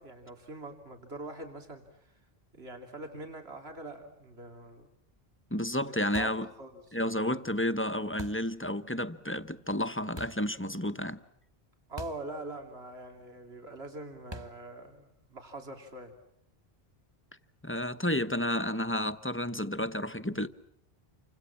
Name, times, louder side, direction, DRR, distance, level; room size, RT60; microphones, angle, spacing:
voice 1, 0.0-2.2 2.5-4.9 5.8-7.2 11.9-16.1, right 2 dB, 80° right, 3.4 m, -44 dB
voice 2, 5.5-6.5 6.9-11.2 17.6-20.5, left 1 dB, 15° left, 1.0 m, -31 dB
sound 1, 6.1-6.5 8.2-8.5 10.2-10.5 12.0-12.3 12.6-12.7 14.3-14.7, equal, 25° right, 1.6 m, -44 dB
29.5 x 26.0 x 7.3 m
omnidirectional pair, 1.0 m